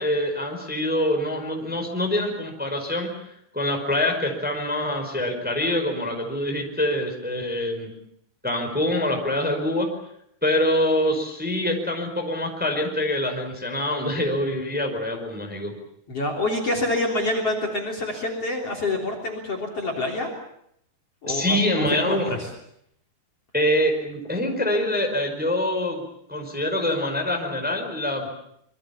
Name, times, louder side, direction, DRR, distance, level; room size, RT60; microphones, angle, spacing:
voice 1, 0.0-7.9 8.4-9.9 10.4-15.7 21.3-22.3 23.5-26.0 26.3-28.3, left 1 dB, ahead, 3 dB, 4.5 m, -25 dB
voice 2, 16.1-20.3 21.2-22.5, left 2 dB, 35° left, 4 dB, 4.2 m, -27 dB
26.5 x 24.0 x 7.2 m, 0.73 s
omnidirectional pair, 4.7 m